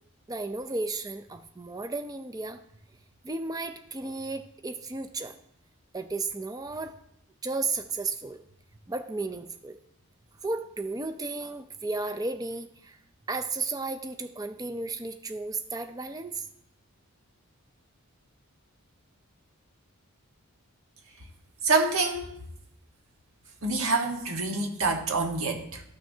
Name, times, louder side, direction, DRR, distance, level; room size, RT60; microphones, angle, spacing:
voice 1, 0.3-2.6 3.2-5.3 5.9-7.0 7.4-8.4 8.9-9.8 10.4-13.0 13.3-16.5, right 3 dB, 15° right, 8 dB, 0.4 m, -34 dB
voice 2, 21.6-22.3 23.6-25.8, right 3 dB, 70° right, 3 dB, 1.3 m, -26 dB
13.0 x 6.2 x 2.7 m, 0.71 s
head